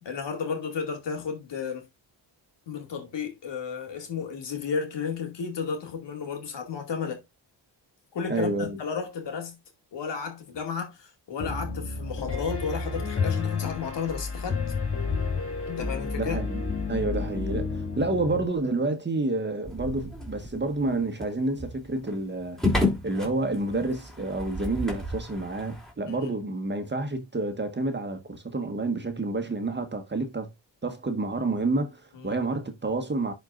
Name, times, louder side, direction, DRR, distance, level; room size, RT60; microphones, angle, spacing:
voice 1, 0.0-1.9 2.7-7.2 8.1-9.6 9.9-14.6 15.7-16.4 26.1-26.3 32.1-32.4, left 6 dB, 70° left, 2.5 m, -33 dB
voice 2, 8.3-8.8 16.2-16.6 16.9-30.5 30.8-33.3, right 2 dB, 25° right, 1.5 m, -29 dB
Piano, 11.4-18.4, left 4 dB, 30° left, 2.5 m, -30 dB
sound 1, 19.6-25.9, left 2 dB, ahead, 3.3 m, -32 dB
10.5 x 4.6 x 2.6 m
cardioid pair, 85°, 44 cm